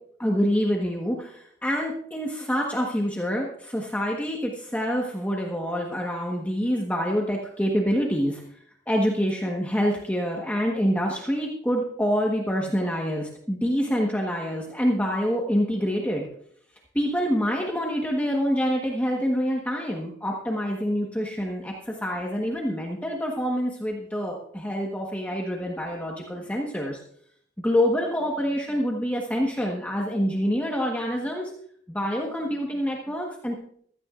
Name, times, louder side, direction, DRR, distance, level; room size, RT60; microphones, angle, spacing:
voice 1, 0.2-8.6 8.9-16.3 16.9-27.0 27.6-31.5 31.9-33.6, equal, 10° left, -1 dB, 1.3 m, -26 dB
16.0 x 14.5 x 2.5 m, 0.64 s
head